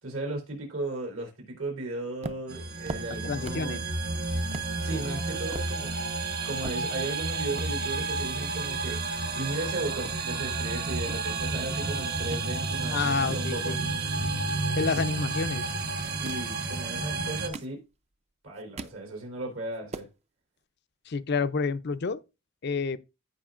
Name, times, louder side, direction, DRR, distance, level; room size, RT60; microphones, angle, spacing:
voice 1, 0.0-3.8 4.8-5.9 6.4-9.0 9.4-13.8 16.2-17.8 18.4-20.1, right 2 dB, 75° right, 3.4 m, -36 dB
sound 1, 2.2-3.8 4.1-4.2 4.5-4.7 5.2-7.2 7.5-7.7 8.4-9.6 9.8-10.2 10.8-12.5 12.9-14.2 14.8-15.2 16.0-16.5 17.2-18.1 18.5-19.0 19.4-19.5 19.7-20.1, right 3 dB, 30° right, 0.5 m, -41 dB
sound 2, 2.5-17.5, right 3 dB, 50° right, 1.3 m, -31 dB
voice 2, 3.2-3.8 12.9-13.8 14.7-15.6 21.1-22.2 22.6-23.0, left 4 dB, 50° left, 0.5 m, -29 dB
14.5 x 5.1 x 2.5 m
head